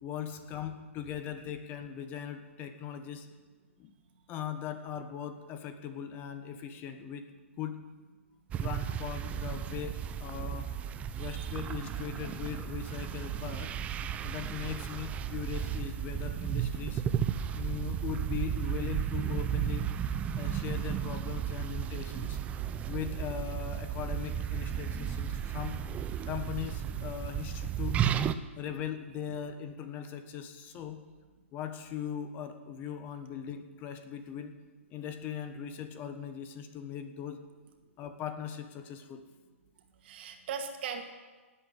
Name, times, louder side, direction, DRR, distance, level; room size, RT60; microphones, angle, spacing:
voice 1, 0.0-3.3 3.8-3.9 4.3-7.3 7.6-7.8 8.6-10.7 11.2-13.7 14.2-17.0 17.5-19.9 20.3-22.4 22.9-25.8 26.2-28.0 28.6-31.0 31.5-34.5 34.9-37.4 38.0-39.2, left 9 dB, 25° left, 8 dB, 1.3 m, -39 dB
sound 1, 8.5-28.3, right 9 dB, 20° right, 0.6 m, -34 dB
voice 2, 11.2-11.6 40.0-41.0, right 6 dB, 50° right, 5 dB, 2.4 m, -39 dB
17.5 x 8.4 x 9.4 m, 1.3 s
hypercardioid pair, 140°, 7 cm